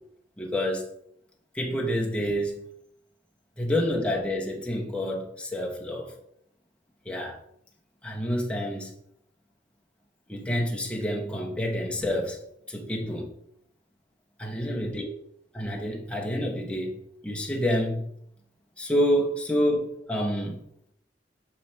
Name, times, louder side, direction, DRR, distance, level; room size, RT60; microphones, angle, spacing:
voice 1, 0.4-0.8 1.5-2.6 3.6-6.1 7.1-7.4 8.0-8.9 10.3-12.4 12.7-13.3 14.4-15.1 15.5-17.0 17.2-18.1 18.8-20.6, equal, 5° left, -2 dB, 0.9 m, -28 dB
7.5 x 3.3 x 4.3 m, 0.74 s
head